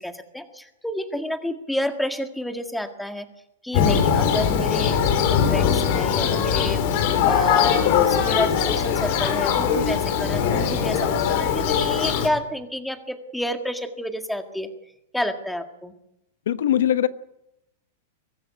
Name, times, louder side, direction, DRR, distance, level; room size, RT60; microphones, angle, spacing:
voice 1, 0.0-3.3 3.6-14.7 15.1-15.9, left 1 dB, ahead, 6 dB, 1.7 m, -30 dB
Thunder, 3.7-12.3, left 8 dB, 50° left, 3.8 m, -21 dB
voice 2, 16.5-17.1, left 11 dB, 85° left, 13 dB, 1.0 m, -20 dB
23.0 x 13.5 x 9.2 m, 0.85 s
supercardioid pair, 150°, 0 cm